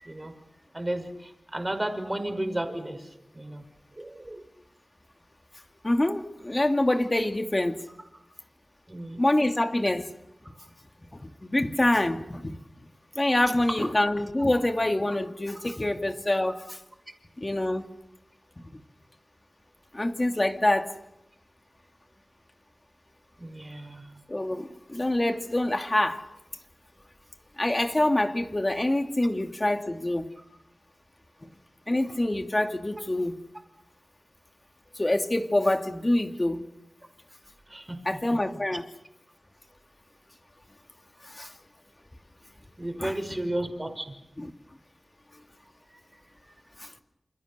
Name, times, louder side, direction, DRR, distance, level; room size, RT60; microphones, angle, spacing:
voice 1, 0.0-0.3 0.7-3.6 4.0-4.4 8.9-9.2 14.4-14.5 23.4-24.2 37.7-38.0 38.3-38.4 42.8-44.1, right 1 dB, 25° right, 6 dB, 5.8 m, -33 dB
voice 2, 5.8-7.8 9.2-10.1 11.1-12.6 13.1-16.8 17.4-17.9 19.9-20.9 24.3-26.3 27.6-30.3 31.4-31.5 31.9-33.4 34.9-36.7 38.0-38.8 41.2-41.5 43.0-43.1 44.4-44.5 46.8-46.9, left 1 dB, 25° left, 6 dB, 2.5 m, -26 dB
28.5 x 28.5 x 6.8 m, 0.85 s
wide cardioid pair, 70°, 0 cm